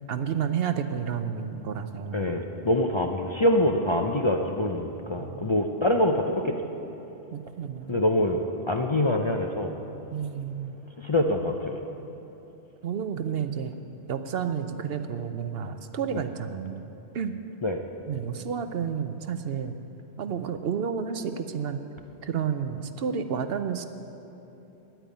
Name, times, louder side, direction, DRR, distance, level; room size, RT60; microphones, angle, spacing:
voice 1, 0.1-2.3 5.2-5.5 7.3-8.0 10.1-10.7 12.8-13.7 14.1-16.9 17.1-17.4 18.1-19.8 20.2-21.8 22.2-23.9, right 7 dB, 65° right, 9 dB, 0.8 m, -31 dB
voice 2, 2.1-6.6 7.9-9.8 11.0-11.8 17.6-17.8, left 1 dB, 35° left, 2 dB, 0.5 m, -25 dB
10.0 x 9.1 x 9.2 m, 3.0 s
omnidirectional pair, 1.2 m